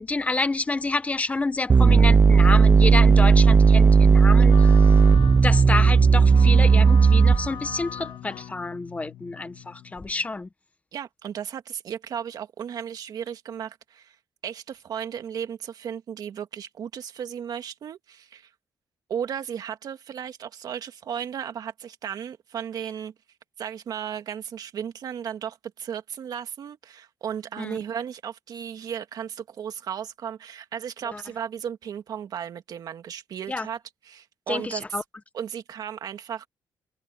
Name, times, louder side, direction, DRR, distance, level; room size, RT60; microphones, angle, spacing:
voice 1, 0.0-4.9 5.4-10.5 27.6-27.8 31.0-31.2 33.5-33.7 34.5-35.0, left 3 dB, 20° left, 1.1 m, -29 dB
sound 1, 1.7-7.7, right 5 dB, 25° right, 0.5 m, -15 dB
sound 2, 4.5-10.2, left 10 dB, 80° left, 2.0 m, -39 dB
voice 2, 10.9-14.2 14.4-18.5 19.1-23.1 23.6-33.8 34.1-34.8 35.3-36.5, right 8 dB, 60° right, 2.1 m, -35 dB
cardioid pair, 130°, 7 cm